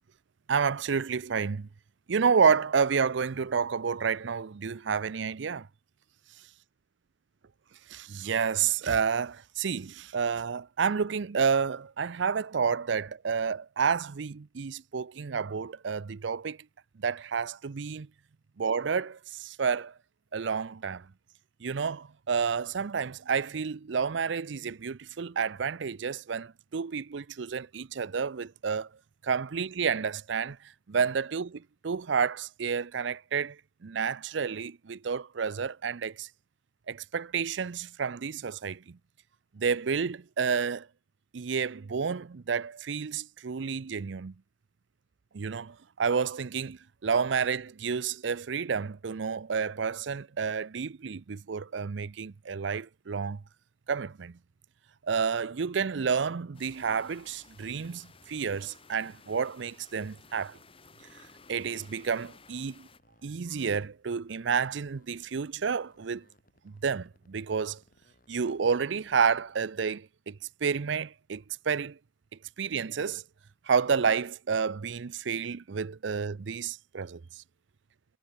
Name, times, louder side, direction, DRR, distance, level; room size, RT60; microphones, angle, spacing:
voice 1, 0.5-1.7 2.1-5.7 7.9-16.6 17.0-18.1 18.6-19.9 20.3-21.1 21.6-28.9 29.2-30.6 30.9-36.3 36.9-39.0 39.5-40.9 41.3-44.3 45.3-53.4 53.9-54.4 55.0-60.6 61.5-62.9 63.2-66.2 66.6-67.8 68.3-72.0 72.6-73.2 73.7-77.4, right 6 dB, 75° right, 0.5 m, -30 dB
sound 1, 56.5-63.0, left 4 dB, 30° left, 3.4 m, -56 dB
sound 2, 59.7-64.0 64.2-69.7, left 1 dB, 45° left, 5.4 m, -66 dB
head